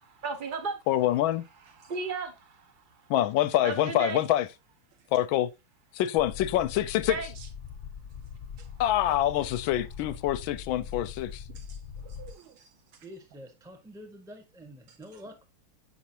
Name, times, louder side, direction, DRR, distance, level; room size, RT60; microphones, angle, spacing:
voice 1, 0.0-0.8 1.8-2.6 3.6-4.2 7.1-7.3, right 4 dB, 50° right, 0.6 m, -34 dB
voice 2, 0.9-1.4 3.1-4.5 5.1-5.5 5.9-7.2 8.8-11.4, left 13 dB, 75° left, 1.3 m, -26 dB
sound 1, 6.2-12.3, left 7 dB, 45° left, 0.8 m, -42 dB
voice 3, 11.5-13.1 14.9-15.2, right 8 dB, 80° right, 1.5 m, -54 dB
voice 4, 13.0-15.5, equal, 5° right, 0.7 m, -47 dB
8.4 x 5.9 x 2.8 m
omnidirectional pair, 2.4 m